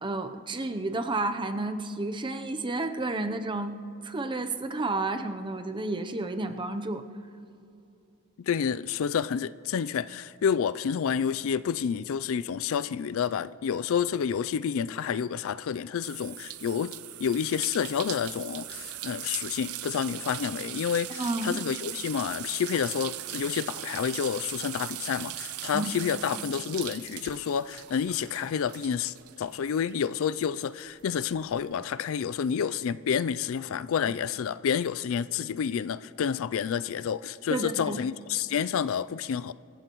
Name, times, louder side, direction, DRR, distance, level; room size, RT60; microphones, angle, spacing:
voice 1, 0.0-3.8 4.0-7.0 21.2-21.6 25.7-25.9 37.5-38.0, right 2 dB, 20° right, 0.7 m, -31 dB
voice 2, 8.4-16.9 17.2-39.5, left 7 dB, 65° left, 0.3 m, -29 dB
sound 1, 16.0-30.1 30.4-31.6, right 13 dB, 85° right, 0.6 m, -39 dB
26.0 x 14.5 x 3.1 m
head